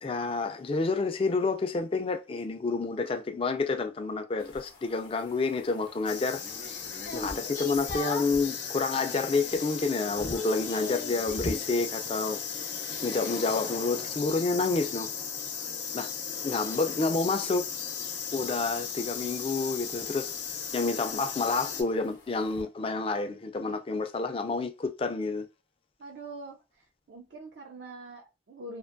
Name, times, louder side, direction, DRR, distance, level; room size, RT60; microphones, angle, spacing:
voice 1, 0.0-6.4 7.1-12.4 13.0-15.1 15.9-16.1 16.4-17.7 18.3-20.3 20.7-25.5, left 3 dB, 30° left, 0.3 m, -29 dB
sound 1, 4.4-8.5 9.0-9.4 9.6-11.7 14.2-22.6, left 3 dB, 50° left, 0.8 m, -42 dB
sound 2, 6.1-21.8, left 7 dB, 85° left, 0.7 m, -36 dB
voice 2, 26.0-28.8, right 2 dB, 80° right, 0.4 m, -44 dB
2.5 x 2.2 x 2.5 m
head